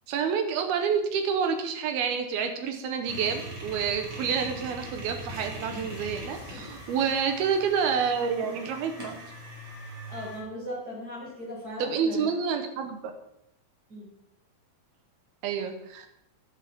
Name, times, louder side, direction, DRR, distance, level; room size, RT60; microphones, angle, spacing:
voice 1, 0.1-9.2 11.8-13.0 15.4-16.1, right 6 dB, 90° right, 5 dB, 3.2 m, -28 dB
sound 1, 3.0-10.4, right 2 dB, 40° right, 3.3 m, -42 dB
sound 2, 3.5-8.7, left 4 dB, 60° left, 1.7 m, -49 dB
voice 2, 5.7-6.0 6.5-6.7 10.1-12.3 13.9-14.1, equal, 25° right, -5 dB, 6.5 m, -38 dB
14.0 x 10.5 x 3.8 m, 0.78 s
omnidirectional pair, 4.2 m